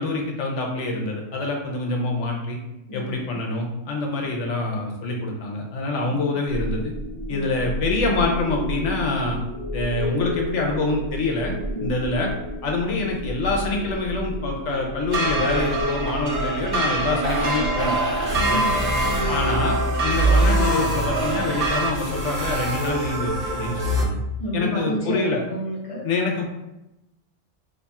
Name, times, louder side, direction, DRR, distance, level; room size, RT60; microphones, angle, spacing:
voice 1, 0.0-2.6 2.9-6.9 7.3-9.4 9.7-11.5 11.8-12.3 12.6-18.0 18.5-18.6 19.3-24.2 24.5-25.4 26.0-26.5, left 3 dB, 75° left, 0 dB, 1.0 m, -26 dB
voice 2, 2.9-3.4 6.0-6.2 7.3-7.5 11.7-11.9 18.4-19.5 24.4-26.1, equal, 30° left, -4 dB, 0.8 m, -30 dB
sound 1, 6.5-24.0, right 1 dB, 40° right, 0.7 m, -27 dB
sound 2, 15.1-21.9, right 2 dB, 70° right, 0.8 m, -26 dB
2.8 x 2.3 x 4.1 m, 0.93 s
omnidirectional pair, 1.3 m